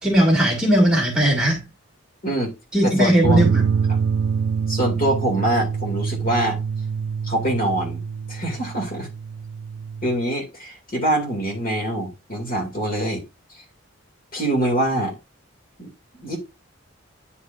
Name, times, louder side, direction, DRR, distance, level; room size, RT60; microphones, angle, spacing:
voice 1, 0.0-1.6 2.7-3.6, equal, 5° right, 2.5 m, -18 dB
voice 2, 2.2-2.5 2.8-3.4 4.7-6.6 7.2-8.0 8.3-9.1 10.0-13.2 14.3-15.2 15.8-15.9 16.2-16.4, right 1 dB, 45° left, 2.4 m, -24 dB
sound 1, 3.2-10.1, right 6 dB, 60° right, 0.4 m, -25 dB
9.9 x 4.7 x 2.5 m
head